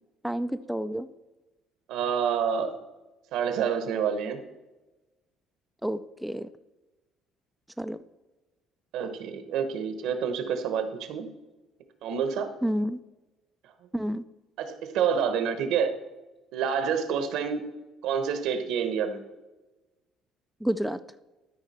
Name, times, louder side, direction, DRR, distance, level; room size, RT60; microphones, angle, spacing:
voice 1, 0.2-1.1 5.8-6.5 7.8-8.0 12.6-13.0 13.9-14.2 20.6-21.0, equal, ahead, 10 dB, 0.3 m, -29 dB
voice 2, 1.9-2.7 3.3-4.4 8.9-11.3 12.0-12.5 14.6-15.9 16.5-17.6 18.0-19.2, right 7 dB, 75° right, 9 dB, 1.0 m, -28 dB
12.5 x 4.9 x 4.2 m, 1.1 s
cardioid pair, 120°, 0 cm